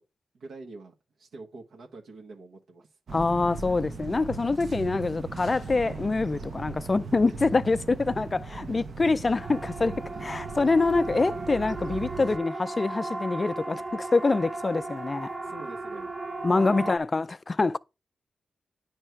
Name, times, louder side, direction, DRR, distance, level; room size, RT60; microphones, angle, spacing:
voice 1, 0.3-2.9 7.3-7.4 8.1-9.0 10.1-10.3 15.4-16.1 16.5-16.9, right 3 dB, 85° right, 1.2 m, -45 dB
voice 2, 3.1-15.3 16.4-17.8, left 3 dB, 35° left, 0.4 m, -25 dB
sound 1, 3.1-12.4, right 4 dB, 65° right, 0.7 m, -39 dB
Siren, 9.4-17.0, right 2 dB, 30° right, 0.7 m, -36 dB
9.5 x 3.3 x 4.5 m
cardioid pair, 65°, 0 cm